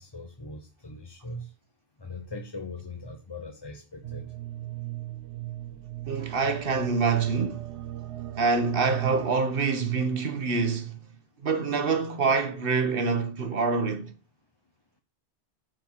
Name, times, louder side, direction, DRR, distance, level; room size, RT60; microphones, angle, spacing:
voice 1, 0.0-1.5 2.0-4.3 5.7-5.8, left 2 dB, 25° left, 0.8 m, -40 dB
sound 1, 4.0-9.3, right 15 dB, 70° right, 1.0 m, -36 dB
voice 2, 6.1-7.6 8.4-11.0 11.4-14.1, right 4 dB, 50° right, 1.4 m, -26 dB
10.0 x 4.6 x 7.2 m
omnidirectional pair, 1.2 m